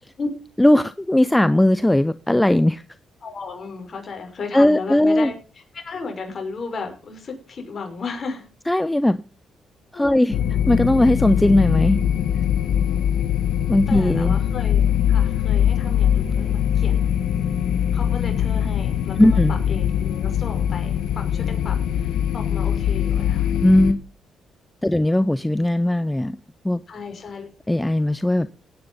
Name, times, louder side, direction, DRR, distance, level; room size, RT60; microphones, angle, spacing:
voice 1, 0.6-2.8 4.5-5.3 8.7-9.2 9.9-10.4 10.7-12.0 13.7-14.4 19.2-19.5 23.6-24.0 24.8-26.4 26.6-26.8 27.7-28.5, left 1 dB, 10° left, 0.6 m, -18 dB
voice 2, 3.2-5.3 5.8-8.5 9.9-10.4 13.9-17.1 17.9-23.5 26.9-27.5, left 4 dB, 45° left, 5.6 m, -34 dB
sound 1, 10.3-23.9, left 9 dB, 85° left, 1.3 m, -22 dB
17.0 x 9.5 x 5.5 m
cardioid pair, 90°, 0 cm